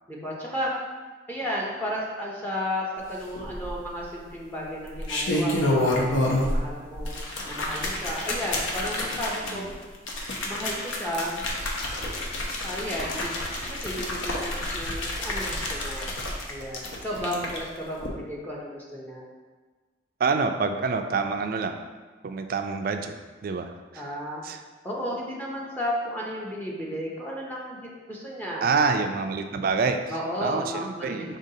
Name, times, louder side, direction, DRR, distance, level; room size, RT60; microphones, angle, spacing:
voice 1, 0.1-0.7 1.3-7.2 7.4-9.7 10.4-11.4 12.6-16.2 16.5-19.3 23.9-24.4 24.8-28.7 30.1-31.4, equal, 10° left, -5 dB, 0.5 m, -33 dB
sound 1, 3.3-4.0 4.8-6.7 6.9-17.6 18.0-18.1, left 1 dB, 90° left, 0.7 m, -29 dB
voice 2, 9.4-9.8 17.2-17.5 20.2-21.8 22.2-23.1 23.4-24.1 24.4-24.6 28.6-30.0 30.4-31.4, right 4 dB, 50° right, 6 dB, 0.3 m, -27 dB
5.1 x 3.8 x 2.7 m, 1.4 s
head